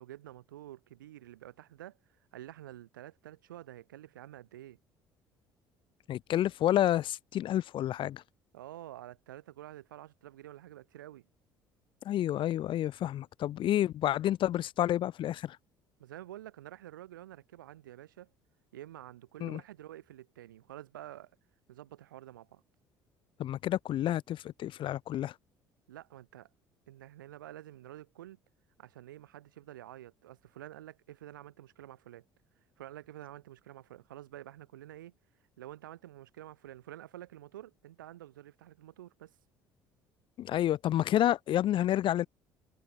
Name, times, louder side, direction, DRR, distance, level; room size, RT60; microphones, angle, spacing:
voice 1, 0.0-2.0 2.3-4.8 8.5-11.3 16.0-18.3 18.7-21.3 21.7-22.6 25.9-26.5 26.9-28.4 28.8-32.2 32.8-35.1 35.6-39.4, right 13 dB, 80° right, 7.2 m, -49 dB
voice 2, 6.1-8.2 12.0-15.6 19.4-19.6 23.4-25.3 40.4-42.3, left 12 dB, 50° left, 1.1 m, -29 dB
figure-of-eight pair, 55°, 11 cm